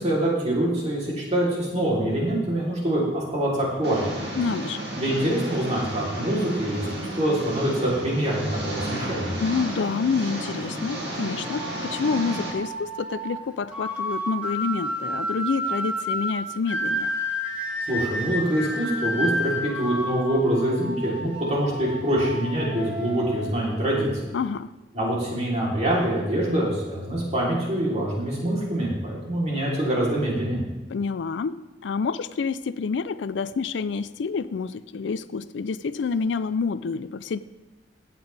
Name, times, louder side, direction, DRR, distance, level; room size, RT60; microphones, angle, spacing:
voice 1, 0.0-4.2 4.9-9.3 17.9-24.1 24.9-30.6, right 1 dB, 40° right, -5 dB, 3.3 m, -25 dB
Engine, 3.8-12.5, right 1 dB, 65° right, 2.3 m, -33 dB
voice 2, 4.4-4.8 9.4-17.1 24.3-24.7 30.9-31.6 31.8-37.4, left 5 dB, 80° left, 15 dB, 0.4 m, -28 dB
sound 1, 11.4-24.2, equal, 10° right, 2.4 m, -31 dB
15.0 x 8.4 x 3.4 m, 1.1 s
head